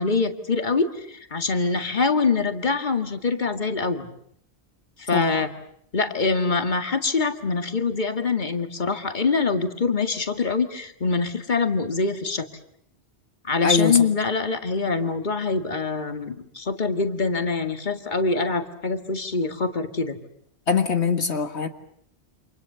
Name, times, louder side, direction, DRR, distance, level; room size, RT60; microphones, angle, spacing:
voice 1, 0.0-4.1 5.0-5.5 5.9-12.5 13.4-20.2, left 4 dB, 45° left, 7 dB, 2.1 m, -24 dB
voice 2, 5.1-5.4 13.6-14.0 20.7-21.7, left 5 dB, 75° left, 7 dB, 1.9 m, -22 dB
29.5 x 27.5 x 6.9 m, 0.70 s
omnidirectional pair, 1.1 m